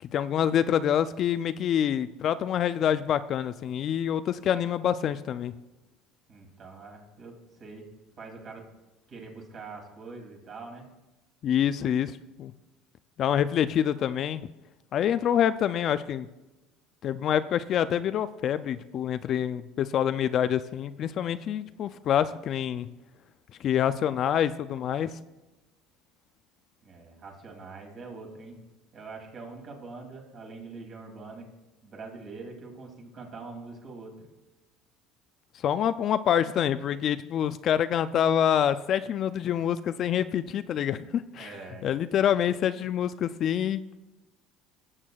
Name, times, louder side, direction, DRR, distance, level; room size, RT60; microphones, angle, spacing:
voice 1, 0.0-5.5 11.4-12.5 13.2-14.5 14.9-16.3 17.0-22.9 23.6-25.2 35.6-41.6 41.8-43.8, left 9 dB, 45° left, 13 dB, 0.3 m, -26 dB
voice 2, 6.3-7.9 8.2-8.6 9.1-10.9 26.8-28.6 28.9-31.5 31.8-34.3 41.3-41.9, right 3 dB, 40° right, 1 dB, 2.5 m, -44 dB
16.0 x 7.3 x 2.3 m, 1.1 s
supercardioid pair, 115°, 0 cm